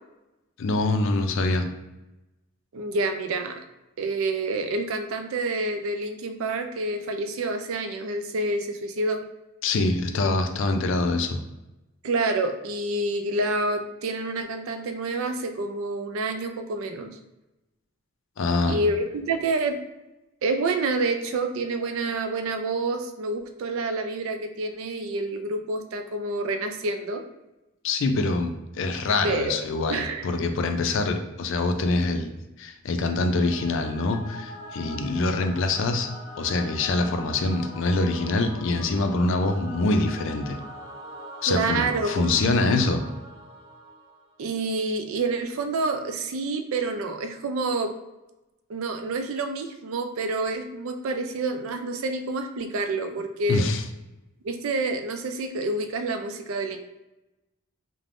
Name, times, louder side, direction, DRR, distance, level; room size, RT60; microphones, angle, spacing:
voice 1, 0.6-1.7 9.6-11.4 18.4-18.8 27.8-32.3 32.6-36.1 36.4-40.6 41.4-43.0 53.5-53.8, left 2 dB, 65° left, 6 dB, 0.4 m, -25 dB
voice 2, 2.7-3.6 4.0-9.2 12.0-17.2 18.7-19.8 20.4-27.2 29.2-30.3 41.5-42.2 44.4-47.9 48.7-53.6 54.4-56.8, right 2 dB, 75° right, 6 dB, 0.4 m, -28 dB
Singing / Musical instrument, 33.2-44.5, left 1 dB, 35° left, 1.1 m, -42 dB
3.2 x 2.1 x 2.5 m, 0.98 s
head